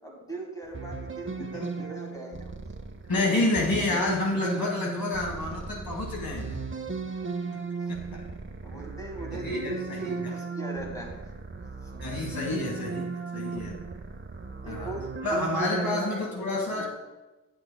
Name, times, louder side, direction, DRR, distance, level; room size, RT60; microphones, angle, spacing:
voice 1, 0.0-2.5 4.5-4.6 7.8-7.9 8.6-11.2 11.8-12.0 14.5-16.9, right 2 dB, 10° left, 0 dB, 1.8 m, -39 dB
sound 1, 0.7-16.0, right 4 dB, 35° right, 0.6 m, -36 dB
voice 2, 3.1-6.6 7.5-7.6 7.9-8.2 9.3-10.1 12.0-13.8 14.6-14.9 15.2-16.9, left 2 dB, 85° left, -1 dB, 1.5 m, -29 dB
10.0 x 7.8 x 2.2 m, 1.1 s
wide cardioid pair, 65°, 35 cm